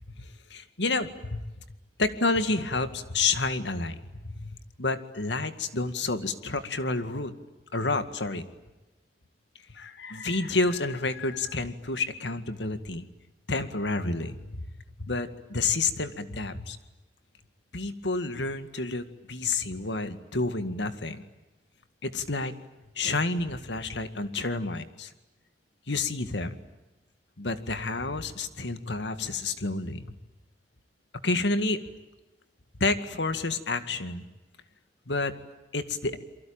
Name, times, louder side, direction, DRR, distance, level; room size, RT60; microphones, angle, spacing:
voice 1, 0.2-1.4 2.0-4.5 4.8-7.3 7.7-8.5 9.7-13.0 13.5-14.5 15.0-16.8 17.7-21.2 22.0-22.5 23.0-25.1 25.9-26.6 27.4-30.0 31.2-31.8 32.8-34.2 35.1-35.3 35.7-36.2, left 3 dB, 85° left, 10 dB, 2.1 m, -29 dB
28.5 x 23.5 x 8.9 m, 1.1 s
head